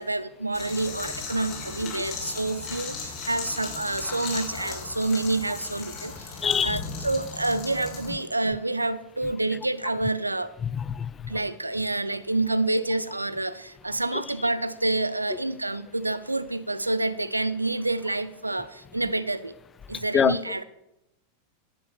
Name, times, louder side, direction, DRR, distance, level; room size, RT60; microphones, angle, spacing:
voice 1, 0.0-6.4 6.6-10.5 11.3-19.5 19.9-20.6, right 2 dB, 85° right, 15 dB, 0.5 m, -28 dB
sound 1, 0.5-8.1, left 4 dB, 45° left, 4.4 m, -36 dB
voice 2, 6.4-6.8 8.1-8.2 10.6-11.3 14.1-14.2 19.9-20.4, left 7 dB, 20° left, 18 dB, 0.5 m, -26 dB
11.5 x 8.7 x 6.7 m, 0.88 s
figure-of-eight pair, 90°, 0 cm